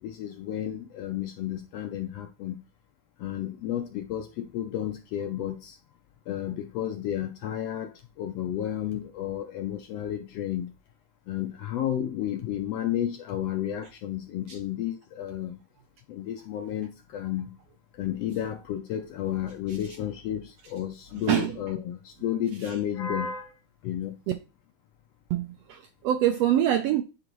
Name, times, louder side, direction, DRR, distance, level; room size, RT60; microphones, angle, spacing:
voice 1, 0.0-2.6 3.2-5.8 6.3-10.7 11.3-15.6 16.1-17.6 17.9-23.5 23.8-24.2, left 10 dB, 75° left, 1.5 m, -32 dB
voice 2, 25.3-27.0, right 11 dB, 80° right, 1.4 m, -25 dB
9.8 x 3.9 x 3.0 m
omnidirectional pair, 3.4 m